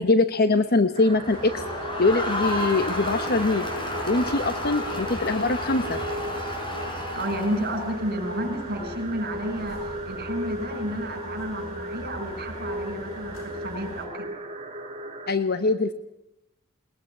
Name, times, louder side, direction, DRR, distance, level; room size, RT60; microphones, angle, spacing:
voice 1, 0.0-1.6 2.0-3.7 4.1-6.0 15.3-15.9, left 3 dB, 50° left, 10 dB, 1.1 m, -23 dB
sound 1, 0.9-15.3, right 1 dB, 30° right, 2.5 m, -37 dB
Crowd, 1.1-7.9, left 1 dB, 25° left, 5.7 m, -32 dB
sound 2, 1.2-14.1, left 1 dB, 85° left, 5.6 m, -42 dB
voice 2, 7.1-14.3, right 1 dB, 50° right, 7 dB, 6.1 m, -31 dB
21.5 x 21.0 x 9.8 m, 0.87 s
head